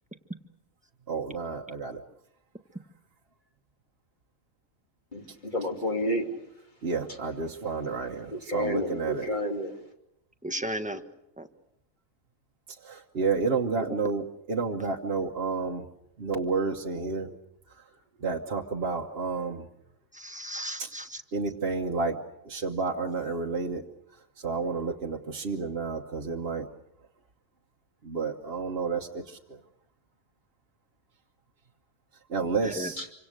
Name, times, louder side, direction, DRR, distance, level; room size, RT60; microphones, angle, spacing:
voice 1, 1.1-2.0 6.8-9.3 12.8-15.9 16.2-17.3 17.7-17.8 18.2-19.7 20.8-20.9 21.3-23.8 24.4-26.7 28.0-29.6 32.3-33.0, right 4 dB, 50° right, 0 dB, 1.4 m, -30 dB
voice 2, 5.1-6.3 8.3-9.7 33.0-33.1, equal, 35° left, 2 dB, 3.0 m, -30 dB
voice 3, 10.4-11.0 11.4-11.5 20.1-21.2 32.6-32.9, equal, 5° right, 7 dB, 1.3 m, -35 dB
26.5 x 25.5 x 6.6 m, 0.83 s
omnidirectional pair, 1.4 m